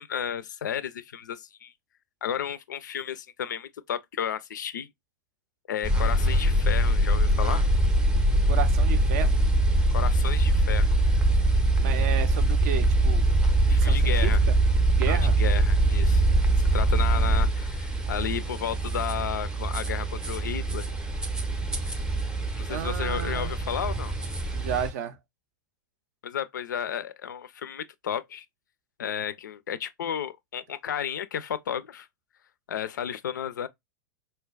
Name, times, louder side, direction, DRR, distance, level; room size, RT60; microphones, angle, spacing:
voice 1, 0.0-1.7 2.2-4.9 5.7-7.6 9.9-10.9 13.7-14.4 15.1-16.2 16.7-20.9 22.6-24.1 26.2-28.5 29.0-32.1 32.7-33.7, left 9 dB, 65° left, 0.4 m, -33 dB
sound 1, 5.8-24.9, right 1 dB, 5° right, 0.5 m, -23 dB
voice 2, 8.5-9.4 11.8-13.4 13.8-14.5 14.9-15.4 17.1-17.4 22.7-23.5 24.5-25.2, right 9 dB, 50° right, 0.5 m, -33 dB
4.2 x 2.2 x 2.3 m
figure-of-eight pair, 90°, 11 cm